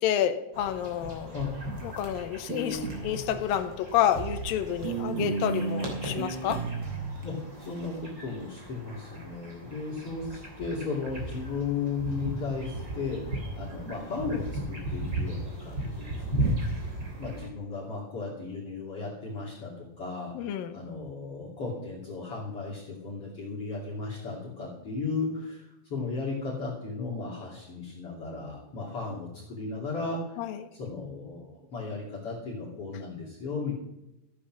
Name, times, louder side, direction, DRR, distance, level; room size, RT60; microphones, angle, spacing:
voice 1, 0.0-6.6 20.3-20.8 30.4-30.7, left 10 dB, 85° left, 2.6 m, -29 dB
sound 1, 0.5-17.5, right 1 dB, 30° right, 3.4 m, -37 dB
sound 2, 2.5-3.2 4.2-4.5 4.8-7.2, right 4 dB, 85° right, 3.1 m, -33 dB
sound 3, 2.7-6.1, left 5 dB, 65° left, 2.4 m, -50 dB
voice 2, 7.2-16.6 17.2-30.4 30.7-33.8, left 4 dB, 45° left, 3.4 m, -35 dB
14.0 x 8.6 x 6.2 m
omnidirectional pair, 4.1 m